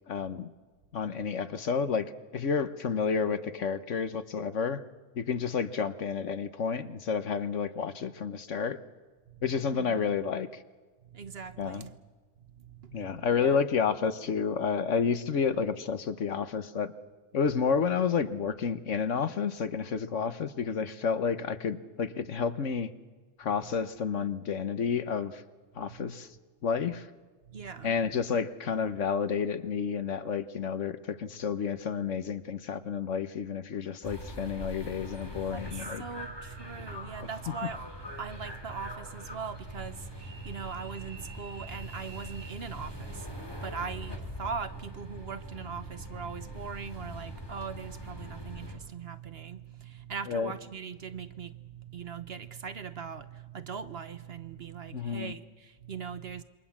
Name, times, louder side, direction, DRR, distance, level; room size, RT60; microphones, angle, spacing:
voice 1, 0.1-0.5 0.9-2.1 2.3-4.8 5.1-8.8 9.4-10.6 11.6-11.9 12.9-16.9 17.3-22.9 23.4-25.4 25.8-26.3 26.6-27.1 27.8-36.0 50.3-50.5 54.9-55.3, left 6 dB, 70° left, 11 dB, 1.4 m, -30 dB
voice 2, 9.7-10.1 11.0-12.0 12.5-13.6 15.5-15.6 25.9-26.1 27.5-28.0 35.5-37.9 38.2-56.4, right 6 dB, 50° right, 11 dB, 1.2 m, -40 dB
sound 1, 34.0-48.8, left 1 dB, 20° left, 3.6 m, -43 dB
27.5 x 23.0 x 7.3 m, 1.4 s
omnidirectional pair, 1.4 m